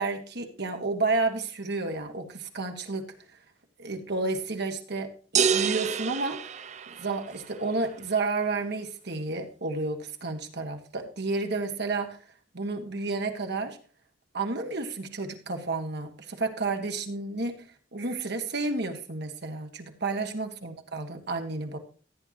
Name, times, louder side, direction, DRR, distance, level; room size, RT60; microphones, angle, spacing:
voice 1, 0.0-3.1 3.8-6.4 6.9-12.2 12.5-13.8 14.3-21.8, right 3 dB, 60° right, 5 dB, 1.7 m, -31 dB
sound 1, 5.4-7.4, right 7 dB, 40° right, 0.5 m, -27 dB
14.0 x 9.9 x 3.0 m, 0.41 s
head